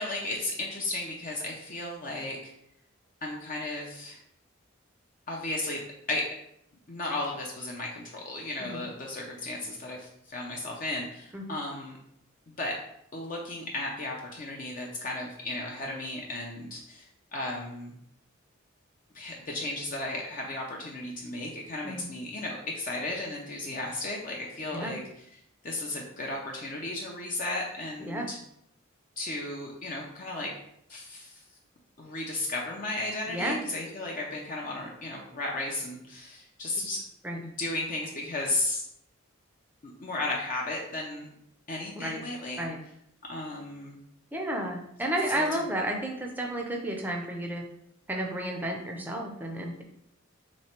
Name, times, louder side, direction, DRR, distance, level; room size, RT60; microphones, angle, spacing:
voice 1, 0.0-2.5 3.2-4.2 5.3-6.3 6.9-12.0 12.6-12.8 13.1-17.1 17.3-18.0 19.1-25.0 25.6-28.4 29.2-30.5 30.9-31.4 32.0-37.0 37.4-38.8 39.8-41.3 41.7-42.7 43.3-44.0 45.3-45.5, left 2 dB, 40° left, -1 dB, 0.5 m, -34 dB
voice 2, 33.3-33.6 36.8-36.9 37.2-37.4 41.9-42.2 42.6-42.8 44.3-47.6 48.1-49.8, right 1 dB, 10° right, 1 dB, 0.5 m, -32 dB
3.2 x 3.1 x 4.4 m, 0.73 s
head